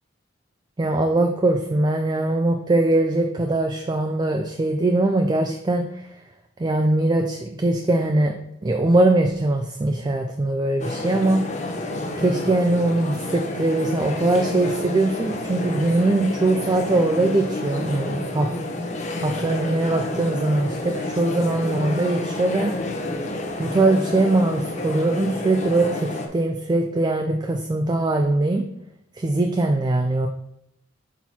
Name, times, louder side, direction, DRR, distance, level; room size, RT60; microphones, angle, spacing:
voice 1, 0.8-6.1 6.6-8.3 8.6-11.4 12.2-18.5 19.2-22.7 23.6-28.6 29.1-30.3, right 2 dB, 20° right, 4 dB, 0.4 m, -21 dB
sound 1, 10.8-26.3, left 2 dB, 35° left, 0.8 m, -30 dB
6.1 x 4.3 x 4.2 m, 0.77 s
head